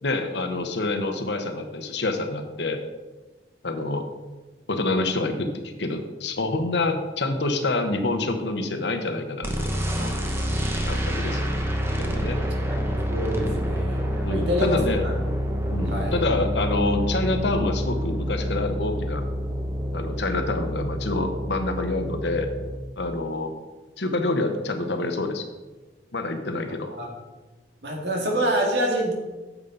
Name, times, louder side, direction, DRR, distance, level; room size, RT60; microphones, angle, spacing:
voice 1, 0.0-2.8 3.6-4.1 4.7-5.5 5.8-10.1 10.8-11.6 11.9-12.4 13.5-13.7 14.2-15.1 15.7-19.3 19.9-22.5 23.0-23.5 24.0-25.4 26.1-26.9, left 2 dB, 75° left, 6 dB, 1.0 m, -27 dB
sound 1, 9.4-22.8, equal, 15° right, 0.9 m, -27 dB
voice 2, 13.1-14.0 14.3-15.1 15.7-16.2 26.9-27.1 27.8-29.1, equal, 75° right, 0 dB, 2.0 m, -26 dB
9.0 x 7.3 x 4.0 m, 1.2 s
head